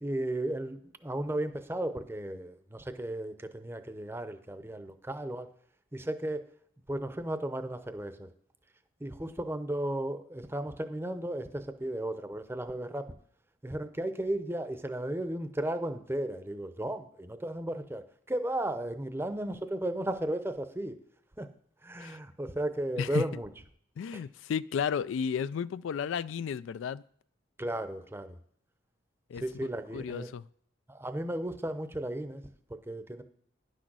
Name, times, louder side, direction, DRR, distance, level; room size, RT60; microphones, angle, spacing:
voice 1, 0.0-5.5 5.9-6.4 6.9-8.3 9.0-13.1 13.6-21.0 21.4-21.5 21.8-23.5 24.1-24.2 27.6-28.4 29.4-30.3 30.9-32.4 32.7-33.2, right 1 dB, 10° right, 10 dB, 0.6 m, -35 dB
voice 2, 23.0-23.4 24.0-27.0 29.3-29.4 29.9-30.4, left 7 dB, 80° left, 18 dB, 0.3 m, -33 dB
10.5 x 6.3 x 6.1 m, 0.65 s
head